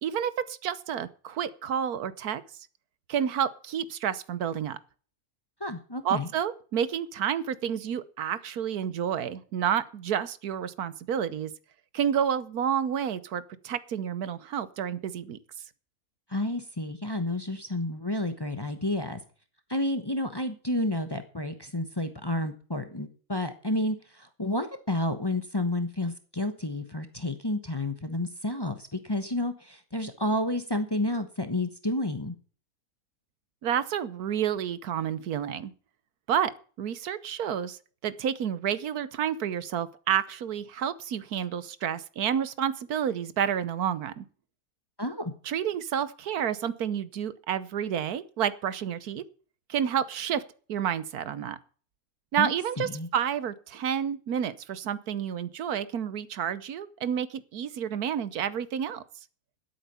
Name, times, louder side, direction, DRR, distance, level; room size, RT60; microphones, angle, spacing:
voice 1, 0.0-2.4 3.1-4.8 6.0-11.5 11.9-15.4 33.6-35.7 36.3-36.5 36.8-44.2 45.4-49.2 49.7-50.4 50.7-51.6 52.3-59.0, right 9 dB, 75° right, 16 dB, 1.4 m, -30 dB
voice 2, 5.6-6.3 16.3-19.2 19.7-32.3 45.0-45.3 52.4-53.1, left 1 dB, 20° left, 9 dB, 1.0 m, -30 dB
12.0 x 8.5 x 6.9 m, 0.41 s
omnidirectional pair, 1.6 m